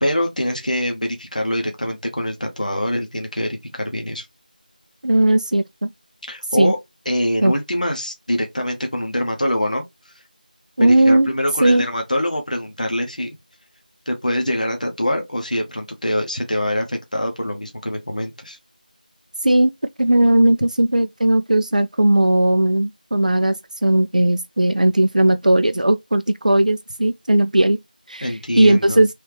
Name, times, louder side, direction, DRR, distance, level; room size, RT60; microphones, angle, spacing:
voice 1, 0.0-4.3 6.3-6.8 7.1-10.1 10.8-13.4 14.1-18.6 28.2-29.0, left 1 dB, 55° left, 0.9 m, -24 dB
voice 2, 5.0-5.9 6.6-6.7 7.4-7.5 10.8-11.3 11.6-11.8 19.4-19.7 20.0-23.6 23.8-27.8 28.1-29.1, right 1 dB, 60° right, 0.3 m, -17 dB
3.3 x 2.7 x 3.2 m
figure-of-eight pair, 175°, 5 cm